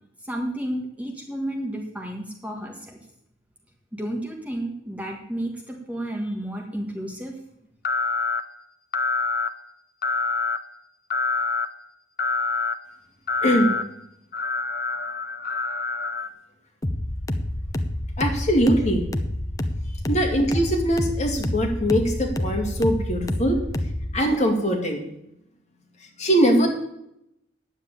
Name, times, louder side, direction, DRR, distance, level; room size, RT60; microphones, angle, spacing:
voice 1, 0.2-3.0 3.9-7.3, right 1 dB, 10° right, 1 dB, 1.6 m, -31 dB
sound 1, 7.8-8.4 8.9-9.5 10.0-10.6 11.1-11.7 12.2-12.8 13.3-13.8 14.3-16.3, left 4 dB, 50° left, 0.8 m, -26 dB
voice 2, 13.4-13.7 18.2-19.1 20.1-23.6 24.1-25.0 26.2-26.7, equal, 35° left, 2 dB, 2.2 m, -21 dB
sound 2, 16.8-24.2, left 1 dB, 20° left, 0.6 m, -28 dB
9.6 x 7.5 x 8.6 m, 0.79 s
head